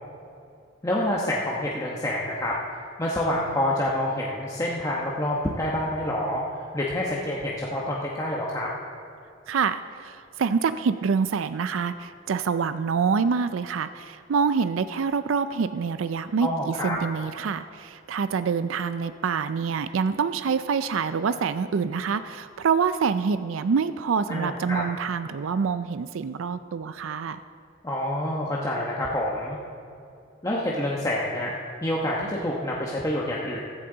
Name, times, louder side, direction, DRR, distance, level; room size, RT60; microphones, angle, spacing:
voice 1, 0.8-6.4 6.7-8.7 16.4-17.0 24.3-24.8 27.8-29.6 30.4-31.5 31.8-33.6, left 1 dB, 15° left, -4 dB, 1.1 m, -27 dB
voice 2, 9.5-27.4, right 5 dB, 80° right, 12 dB, 0.4 m, -26 dB
15.5 x 13.5 x 3.9 m, 2.5 s
head